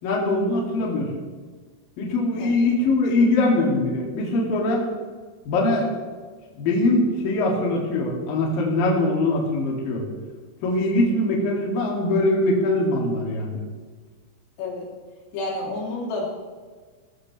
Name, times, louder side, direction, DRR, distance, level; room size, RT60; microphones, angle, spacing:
voice 1, 0.0-1.1 2.0-4.9 5.5-5.9 6.5-10.0 10.6-13.6, left 2 dB, 50° left, -2 dB, 3.6 m, -22 dB
voice 2, 15.3-16.3, left 2 dB, 85° left, -3 dB, 5.8 m, -29 dB
19.0 x 13.5 x 3.3 m, 1.5 s
omnidirectional pair, 5.8 m